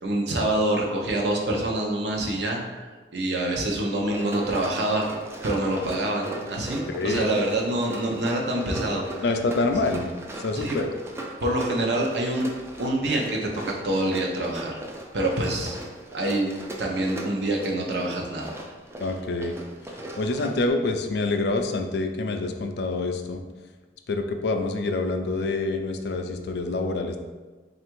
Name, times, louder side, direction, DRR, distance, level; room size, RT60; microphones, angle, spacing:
voice 1, 0.0-5.1 5.4-9.2 10.5-10.8 11.4-12.5 12.8-14.8 15.1-15.7 16.1-16.5 16.8-18.5, right 1 dB, 70° right, -1 dB, 0.7 m, -26 dB
Run, 4.0-20.7, right 1 dB, 15° right, 0.3 m, -38 dB
voice 2, 6.9-7.3 9.2-10.0 10.4-10.9 19.0-19.6 20.2-23.4 24.1-27.2, left 2 dB, 60° left, 5 dB, 0.4 m, -26 dB
3.4 x 2.5 x 4.5 m, 1.3 s
head